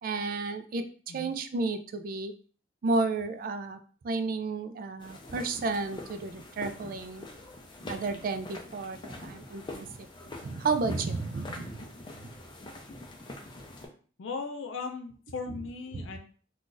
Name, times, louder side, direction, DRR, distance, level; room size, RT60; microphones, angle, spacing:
voice 1, 0.0-2.3 2.8-3.8 4.0-7.3 7.9-10.1 10.4-11.8 12.2-12.3 15.9-16.1, right 3 dB, 50° right, 9 dB, 0.3 m, -32 dB
sound 1, 5.0-13.9, left 2 dB, 25° left, 0.5 m, -44 dB
voice 2, 14.2-16.2, left 4 dB, 90° left, 4 dB, 0.4 m, -37 dB
2.5 x 2.3 x 3.8 m, 0.42 s
head